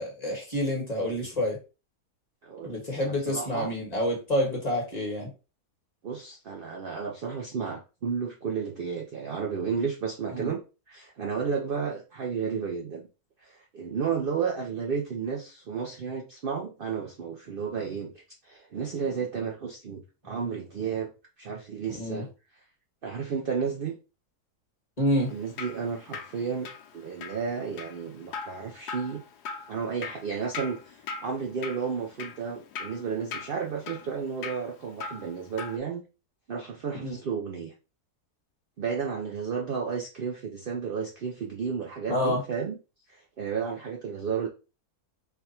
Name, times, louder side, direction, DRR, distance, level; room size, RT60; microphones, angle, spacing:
voice 1, 0.0-1.6 2.6-5.3 10.3-10.5 21.9-22.2 25.0-25.3 37.0-37.2 42.1-42.4, left 1 dB, 25° left, -2 dB, 1.4 m, -28 dB
voice 2, 2.4-3.7 6.0-10.6 10.9-13.1 13.4-18.1 18.4-21.1 21.4-22.3 23.0-23.9 25.3-26.7 26.9-29.2 29.7-36.0 36.5-37.7 38.8-42.8 43.1-44.5, right 6 dB, 70° right, 1 dB, 0.5 m, -32 dB
Drip, 25.2-35.8, left 5 dB, 90° left, 1.2 m, -41 dB
3.4 x 2.4 x 4.1 m, 0.31 s
omnidirectional pair, 1.7 m